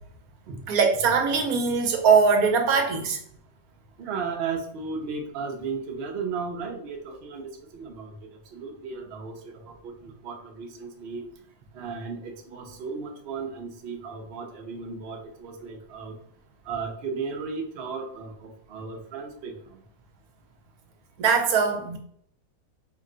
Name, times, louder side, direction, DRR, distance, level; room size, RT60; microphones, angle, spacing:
voice 1, 0.7-3.2 21.2-22.0, right 5 dB, 75° right, 4 dB, 1.1 m, -21 dB
voice 2, 4.0-8.1 8.5-11.2 11.7-16.1 16.6-19.8, right 5 dB, 50° right, 2 dB, 0.8 m, -35 dB
4.4 x 2.1 x 3.7 m, 0.63 s
omnidirectional pair, 1.6 m